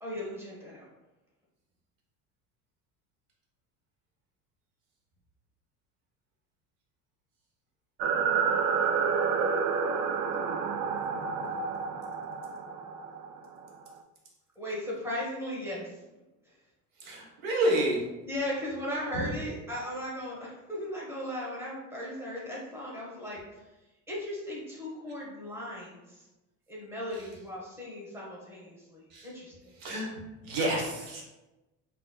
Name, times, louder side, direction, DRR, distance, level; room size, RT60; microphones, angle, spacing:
voice 1, 0.0-0.9 14.5-16.0 16.4-16.5 18.2-23.4 24.1-26.3 26.7-29.5, left 1 dB, 5° right, -5 dB, 1.3 m, -37 dB
sound 1, 8.0-13.9, right 6 dB, 50° right, 0.4 m, -29 dB
voice 2, 17.0-18.0 19.1-19.3 27.1-27.3 29.1-29.3 29.8-30.1 30.4-31.2, right 1 dB, 80° right, -1 dB, 1.1 m, -29 dB
3.9 x 2.8 x 2.2 m, 1.0 s
hypercardioid pair, 75°, 40 cm